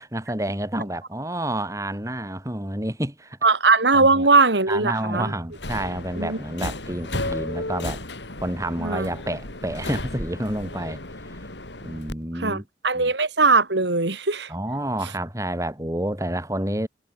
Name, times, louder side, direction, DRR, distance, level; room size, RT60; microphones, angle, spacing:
voice 1, 0.0-3.4 3.9-4.3 4.7-8.0 8.4-11.0 11.8-12.6 12.9-13.1 14.5-16.9, right 1 dB, 20° right, 4.7 m, -29 dB
voice 2, 3.4-5.3 6.2-6.4 8.8-9.1 12.4-14.5, right 3 dB, 85° right, 3.1 m, -20 dB
Subway metro underground, 5.5-12.1, left 2 dB, 85° left, 6.3 m, -34 dB
head